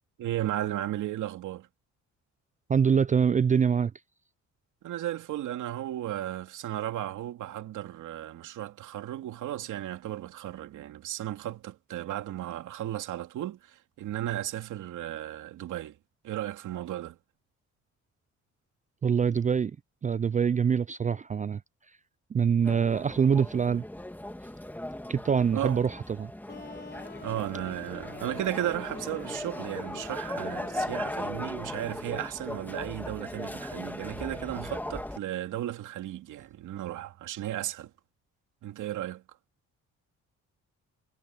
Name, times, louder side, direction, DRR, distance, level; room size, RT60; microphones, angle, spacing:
voice 1, 0.2-1.7 4.8-16.0 16.2-17.2 25.5-25.8 27.2-37.9 38.6-39.2, right 13 dB, 80° right, 2.6 m, -35 dB
voice 2, 2.7-3.9 19.0-19.7 20.0-21.6 22.3-23.8 25.1-26.3, right 7 dB, 25° right, 0.4 m, -24 dB
sound 1, 22.6-35.2, left 1 dB, 5° left, 2.4 m, -38 dB
sound 2, 26.5-32.3, left 4 dB, 35° left, 4.4 m, -46 dB
cardioid pair, 90°, 30 cm